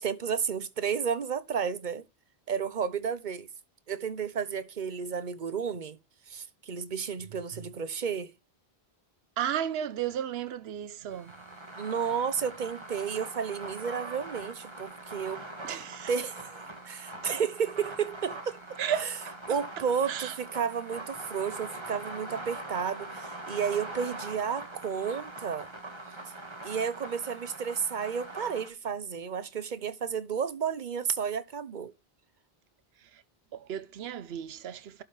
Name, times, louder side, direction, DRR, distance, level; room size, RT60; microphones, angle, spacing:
voice 1, 0.0-2.0 2.5-3.5 3.9-6.0 6.3-8.3 11.8-15.4 16.1-18.6 19.5-25.7 26.6-31.9, right 6 dB, 50° right, 1.0 m, -32 dB
voice 2, 9.4-11.3 15.6-16.1 18.8-19.3 20.1-20.4 33.1-33.2 33.5-35.0, right 9 dB, 80° right, 0.9 m, -34 dB
sound 1, 11.1-28.7, right 2 dB, 25° right, 1.9 m, -42 dB
11.5 x 5.6 x 3.3 m
omnidirectional pair, 1.0 m